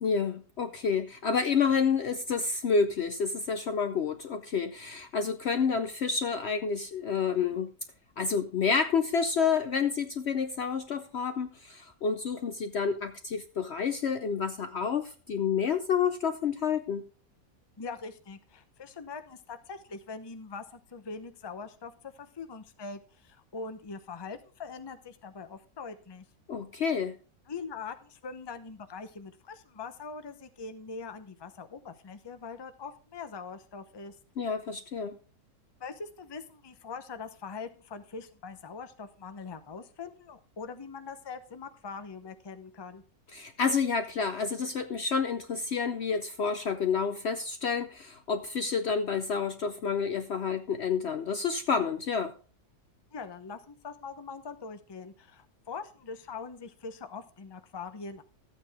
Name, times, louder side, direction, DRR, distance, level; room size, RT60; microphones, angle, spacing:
voice 1, 0.0-7.7 8.2-17.1 26.5-27.2 34.4-35.2 43.3-52.3, left 5 dB, 60° left, 9 dB, 0.8 m, -29 dB
voice 2, 17.8-26.2 27.5-34.2 35.8-43.0 53.1-58.2, left 4 dB, 25° left, 9 dB, 0.6 m, -42 dB
13.5 x 8.6 x 3.5 m, 0.38 s
omnidirectional pair, 1.6 m